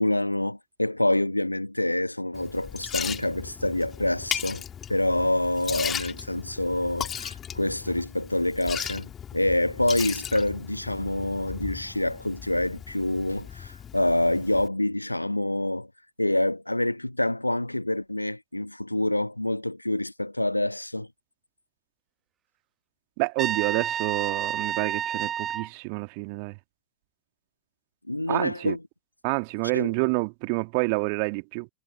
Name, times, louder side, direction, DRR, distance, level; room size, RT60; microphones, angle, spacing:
voice 1, 0.0-4.6 4.9-15.9 16.2-21.1 28.1-28.8 29.7-29.9, left 1 dB, 85° left, 1.4 m, -26 dB
Liquid, 2.3-14.7, left 9 dB, 25° left, 2.4 m, -37 dB
voice 2, 23.2-26.6 28.3-28.8 29.2-31.7, right 37 dB, 45° right, 2.0 m, -28 dB
Trumpet, 23.4-25.7, right 9 dB, 25° right, 1.4 m, -29 dB
figure-of-eight pair, 90°, 0 cm